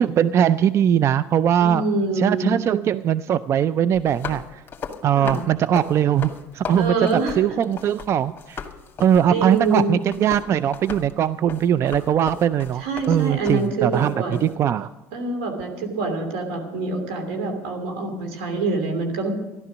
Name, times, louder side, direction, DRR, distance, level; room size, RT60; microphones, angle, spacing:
voice 1, 0.0-1.8 2.1-4.6 5.0-7.0 7.4-8.6 9.0-14.9, right 9 dB, 45° right, 15 dB, 0.4 m, -20 dB
voice 2, 1.6-2.5 5.2-5.4 6.8-7.5 9.3-10.0 12.8-14.4 15.1-19.3, right 3 dB, 85° right, 5 dB, 2.9 m, -25 dB
sound 1, 3.9-8.1 8.4-14.5, left 6 dB, 35° left, 1.9 m, -36 dB
13.0 x 12.0 x 6.2 m, 1.0 s
supercardioid pair, 95°, 6 cm